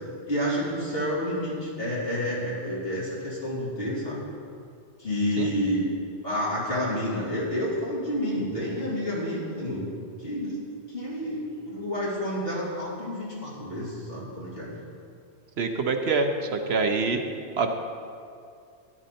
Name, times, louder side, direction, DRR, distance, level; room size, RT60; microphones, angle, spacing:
voice 1, 0.3-4.3 5.0-5.8 6.2-9.9 10.2-10.5 10.9-14.7, equal, 55° left, -7 dB, 3.4 m, -29 dB
voice 2, 15.6-17.2 17.6-17.7, right 4 dB, 65° right, 5 dB, 1.0 m, -25 dB
13.5 x 10.0 x 4.3 m, 2.4 s
omnidirectional pair, 1.2 m